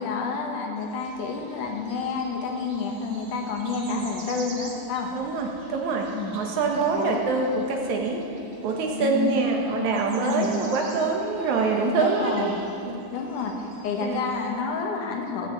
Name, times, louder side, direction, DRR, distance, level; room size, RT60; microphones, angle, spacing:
voice 1, 0.0-5.1 6.1-6.4 6.9-7.2 9.0-9.3 10.2-10.5 12.0-12.6 13.1-15.5, left 5 dB, 85° left, 1 dB, 2.9 m, -29 dB
sound 1, 0.8-14.5, right 2 dB, 45° right, 2.4 m, -47 dB
voice 2, 5.1-6.1 6.3-8.2 8.6-12.5 12.8-13.0 14.0-14.2, right 4 dB, 75° right, 1 dB, 2.8 m, -25 dB
sound 2, 6.7-12.4, left 2 dB, 60° left, 2.9 m, -43 dB
16.5 x 7.3 x 8.0 m, 2.7 s
omnidirectional pair, 3.5 m